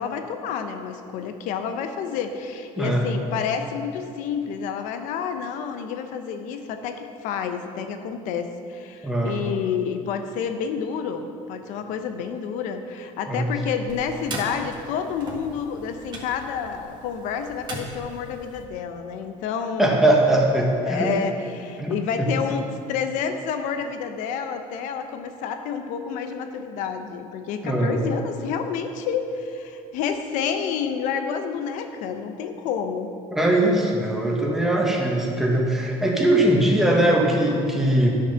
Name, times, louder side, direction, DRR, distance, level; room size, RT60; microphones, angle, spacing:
voice 1, 0.0-20.0 20.8-33.1, left 7 dB, 80° left, 7 dB, 0.9 m, -29 dB
voice 2, 9.0-9.3 13.3-13.5 19.8-21.1 21.8-22.3 27.6-28.0 33.3-38.1, right 1 dB, 5° right, -2 dB, 1.5 m, -21 dB
sound 1, 13.9-18.7, right 2 dB, 35° right, 1.8 m, -38 dB
11.5 x 6.4 x 5.8 m, 2.5 s
cardioid pair, 140°, 13 cm